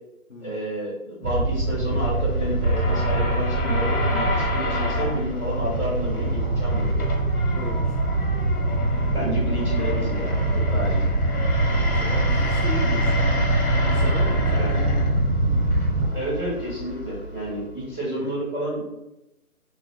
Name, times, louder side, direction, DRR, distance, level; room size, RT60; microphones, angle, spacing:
voice 1, 0.4-7.0 9.0-11.0 14.2-14.7 16.1-18.9, right 1 dB, 15° left, -12 dB, 1.3 m, -30 dB
sound 1, 1.2-16.1, right 2 dB, 65° right, 0.7 m, -23 dB
sound 2, 1.6-18.0, left 2 dB, 80° left, 1.1 m, -30 dB
voice 2, 7.5-8.0 11.8-14.8 18.1-18.3, left 2 dB, 55° left, -4 dB, 0.6 m, -37 dB
2.8 x 2.1 x 3.9 m, 0.92 s
figure-of-eight pair, 165°, 44 cm